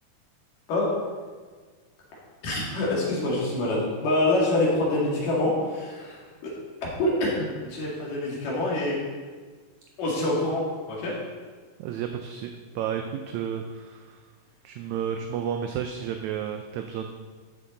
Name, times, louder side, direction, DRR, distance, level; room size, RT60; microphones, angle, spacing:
voice 1, 2.4-6.5 7.0-9.0 10.0-10.6 10.9-11.1, left 2 dB, 85° left, -5 dB, 4.0 m, -26 dB
voice 2, 11.8-14.2 14.6-17.1, right 8 dB, 80° right, 5 dB, 1.7 m, -32 dB
12.0 x 7.4 x 3.9 m, 1.5 s
omnidirectional pair, 3.7 m